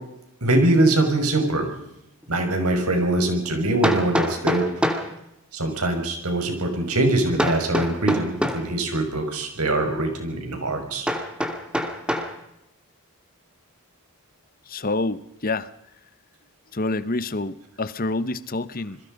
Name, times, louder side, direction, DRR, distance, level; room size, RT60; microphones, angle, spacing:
voice 1, 0.4-1.7 2.3-4.9 5.5-11.1, right 2 dB, 85° right, 5 dB, 5.9 m, -23 dB
Hammer, 2.2-2.3 3.8-5.1 7.4-8.7 11.1-12.3, equal, 5° right, 2.5 m, -25 dB
voice 2, 14.7-15.7 16.7-19.0, left 2 dB, 40° left, 15 dB, 1.0 m, -27 dB
27.5 x 22.0 x 5.3 m, 0.83 s
head